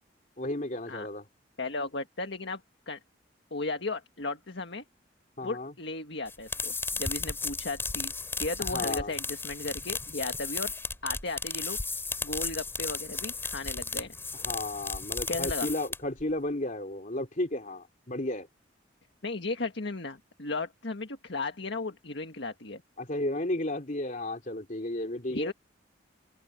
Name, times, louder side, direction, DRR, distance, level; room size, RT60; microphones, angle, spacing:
voice 1, 0.4-1.2 5.4-5.7 8.6-9.1 14.3-18.5 23.0-25.5, left 1 dB, 45° left, 3.1 m, -33 dB
voice 2, 1.6-2.6 2.9-3.0 3.5-4.8 5.4-8.1 8.4-10.7 11.0-11.8 12.2-14.2 15.3-15.7 19.2-22.8 25.3-25.5, left 3 dB, 65° left, 1.7 m, -35 dB
sound 1, 6.3-16.2, left 3 dB, 15° left, 4.6 m, -34 dB
open air
head